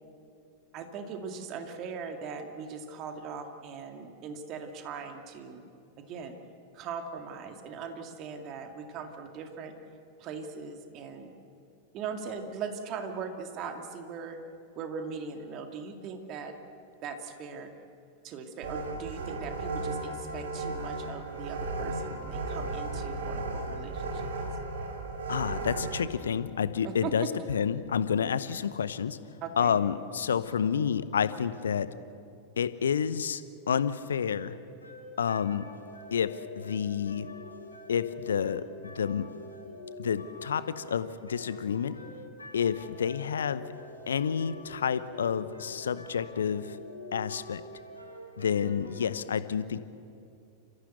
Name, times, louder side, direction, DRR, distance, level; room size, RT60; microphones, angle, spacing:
voice 1, 0.7-5.7 6.0-6.4 6.7-9.7 10.2-11.3 11.9-14.4 14.8-16.5 17.0-17.7 18.2-24.3 26.8-27.3 29.4-29.8, right 5 dB, 35° right, 5 dB, 2.3 m, -40 dB
sound 1, 18.6-26.0, right 3 dB, 60° right, 2.7 m, -35 dB
voice 2, 25.3-29.2 29.6-31.9 32.6-33.4 33.7-34.6 35.2-35.6 36.1-37.3 37.9-39.3 40.0-41.9 42.5-43.6 44.1-46.8 47.1-47.6 48.4-49.8, left 7 dB, 65° left, 14 dB, 0.9 m, -29 dB
sound 2, 34.8-49.1, left 2 dB, 80° left, 3.4 m, -46 dB
29.0 x 15.0 x 8.1 m, 2.5 s
figure-of-eight pair, 90°, 0 cm